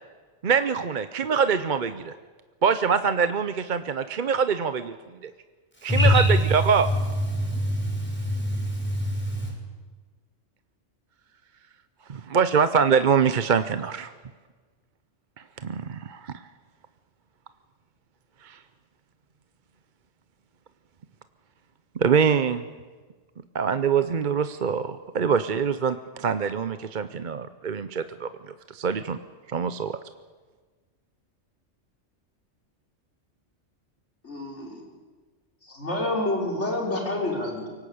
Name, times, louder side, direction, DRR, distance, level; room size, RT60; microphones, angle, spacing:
voice 1, 0.4-2.1 2.6-5.0 5.2-5.3 5.8-6.9 12.1-14.1 15.6-16.3 18.4-18.6 22.0-22.6 23.5-28.3 28.7-29.2 29.5-30.0, right 6 dB, 45° right, 11 dB, 0.8 m, -24 dB
voice 2, 5.9-6.3 7.3-9.5, left 1 dB, 10° left, 0 dB, 6.2 m, -24 dB
voice 3, 34.2-34.8 35.6-37.7, left 1 dB, 65° left, 0 dB, 4.4 m, -28 dB
23.5 x 18.0 x 8.6 m, 1.4 s
omnidirectional pair, 1.3 m